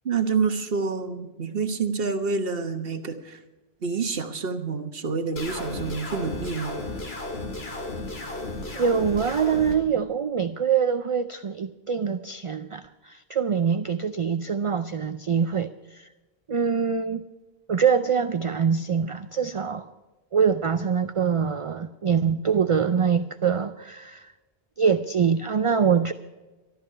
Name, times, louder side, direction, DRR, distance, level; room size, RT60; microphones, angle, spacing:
voice 1, 0.0-3.4 3.8-6.8, right 5 dB, 65° right, 7 dB, 1.4 m, -28 dB
sound 1, 5.4-9.7, left 2 dB, 80° left, 2.4 m, -34 dB
voice 2, 8.7-16.1 16.5-17.3 17.7-19.9 20.3-24.3 24.8-26.1, right 6 dB, 45° right, 11 dB, 0.4 m, -24 dB
14.0 x 12.5 x 5.7 m, 1.2 s
omnidirectional pair, 1.0 m